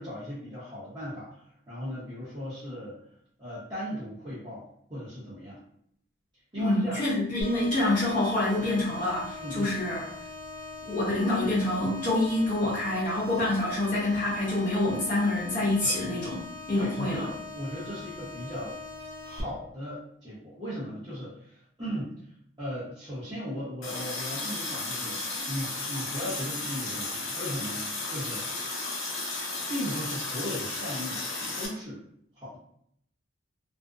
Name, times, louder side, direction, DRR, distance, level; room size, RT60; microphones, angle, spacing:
voice 1, 0.0-3.0 3.4-4.6 4.9-5.6 6.5-7.0 9.4-9.7 15.8-15.9 16.7-18.8 19.2-22.2 22.6-25.2 25.5-28.5 29.7-31.2 31.6-32.0 32.3-32.6, equal, 20° right, -13 dB, 0.8 m, -37 dB
voice 2, 6.6-10.0 10.8-17.3, left 2 dB, 40° left, -9 dB, 0.8 m, -27 dB
sound 1, 7.4-19.4, left 2 dB, 40° right, 0.4 m, -42 dB
Water tap faucet, 23.8-31.7, left 2 dB, 90° left, 0.6 m, -34 dB
2.5 x 2.0 x 2.4 m, 0.68 s
head